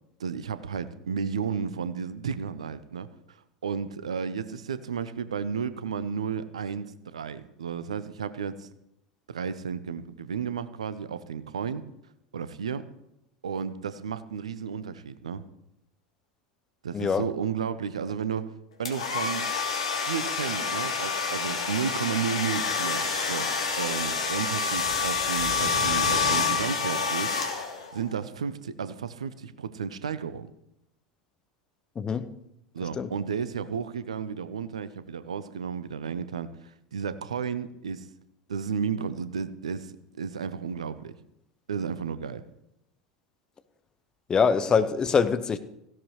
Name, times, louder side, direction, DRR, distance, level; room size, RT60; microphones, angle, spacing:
voice 1, 0.2-3.4 3.6-6.9 7.1-8.7 9.3-11.8 12.3-12.9 13.4-15.4 16.8-19.5 19.9-23.5 23.8-27.4 27.9-30.5 32.7-36.5 36.9-38.1 38.5-41.1 41.7-42.4, right 6 dB, 70° right, 15 dB, 0.7 m, -33 dB
voice 2, 16.9-17.3 32.0-32.3 33.0-33.1 44.3-45.6, left 5 dB, 20° left, 11 dB, 0.8 m, -24 dB
sound 1, 18.8-28.0, left 5 dB, 70° left, 2.2 m, -28 dB
16.5 x 16.0 x 3.2 m, 0.82 s
figure-of-eight pair, 80°, 3 cm